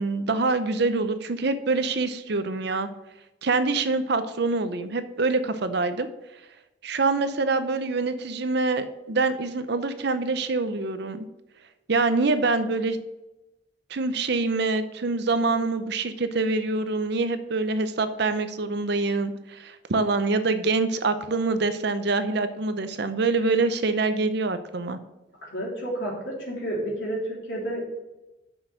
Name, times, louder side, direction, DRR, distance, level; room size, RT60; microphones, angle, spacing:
voice 1, 0.0-2.9 3.4-6.1 6.8-11.3 11.9-13.0 13.9-25.0, right 3 dB, 60° right, 10 dB, 0.7 m, -25 dB
voice 2, 25.4-27.2 27.5-27.8, right 1 dB, 70° left, -4 dB, 3.4 m, -30 dB
6.4 x 6.1 x 6.3 m, 0.99 s
head